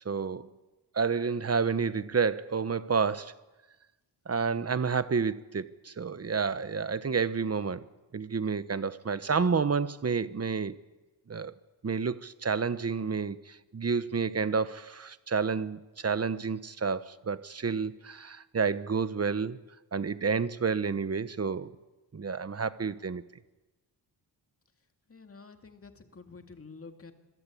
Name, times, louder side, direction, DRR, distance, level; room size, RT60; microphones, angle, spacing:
voice 1, 0.0-0.5 0.9-3.3 4.3-7.9 8.1-10.8 11.3-11.5 11.8-19.6 19.9-21.7 22.1-23.2, right 5 dB, 35° right, 1.0 m, -30 dB
voice 2, 25.1-27.1, left 4 dB, 30° left, 2.2 m, -49 dB
25.5 x 22.5 x 8.5 m
wide cardioid pair, 155°, 44 cm